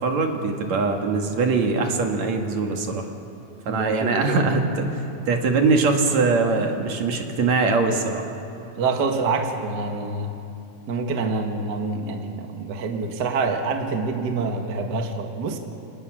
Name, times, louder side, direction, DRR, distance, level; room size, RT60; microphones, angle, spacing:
voice 1, 0.0-3.1 3.7-8.3, right 4 dB, 55° right, 3 dB, 2.8 m, -22 dB
voice 2, 3.7-4.4 8.7-10.3 10.9-15.6, right 4 dB, 40° right, 3 dB, 1.6 m, -26 dB
28.0 x 27.5 x 6.2 m, 2.8 s
omnidirectional pair, 4.0 m